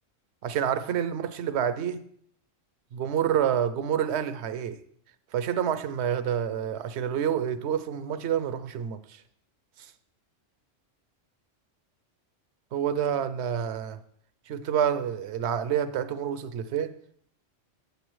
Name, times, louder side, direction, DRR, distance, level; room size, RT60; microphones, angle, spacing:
voice 1, 0.4-2.0 2.9-4.8 5.3-9.2 9.8-9.9 12.7-14.0 14.5-16.9, right 9 dB, 70° right, 0.8 m, -28 dB
8.3 x 7.9 x 3.1 m
omnidirectional pair, 1.3 m